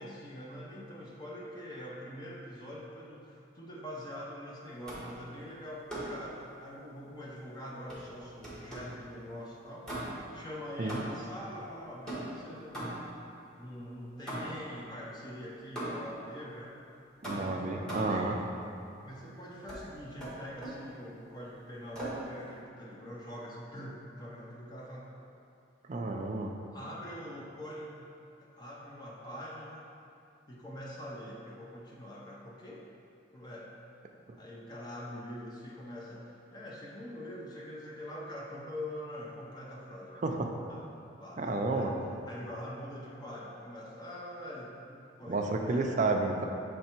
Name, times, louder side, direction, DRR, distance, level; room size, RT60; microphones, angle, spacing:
voice 1, 0.0-10.0 10.3-13.1 13.6-16.8 17.3-18.4 19.0-25.1 26.7-28.1 28.4-29.9 30.5-32.9 33.3-33.7 34.3-40.2 40.7-40.9 41.2-42.0 42.3-45.8, equal, 20° left, -4 dB, 0.6 m, -44 dB
sound 1, 4.9-5.2 5.9-6.3 7.9-9.0 9.8-10.4 10.9-11.4 12.1-13.2 14.3-14.7 15.8-16.2 17.2-18.3 19.7-19.9 20.2-20.9 21.9-22.3, right 1 dB, 5° left, 1.2 m, -39 dB
voice 2, 17.2-18.4 25.9-26.5 40.2-40.5 41.4-41.9 45.3-46.5, right 3 dB, 40° right, 3 dB, 0.4 m, -31 dB
6.6 x 3.3 x 4.4 m, 2.6 s
head